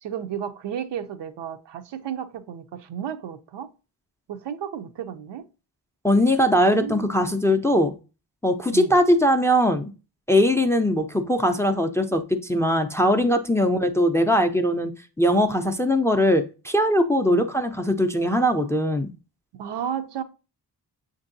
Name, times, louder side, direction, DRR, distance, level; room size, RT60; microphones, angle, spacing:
voice 1, 0.0-3.7 4.3-5.4 6.7-7.1 8.7-8.9 17.3-17.5 18.4-18.6 19.6-20.2, right 9 dB, 80° right, 0.5 m, -33 dB
voice 2, 6.0-7.9 8.4-9.9 10.3-14.9 15.2-19.1, equal, 5° left, 0.3 m, -21 dB
6.6 x 2.6 x 2.6 m
cardioid pair, 55°, 42 cm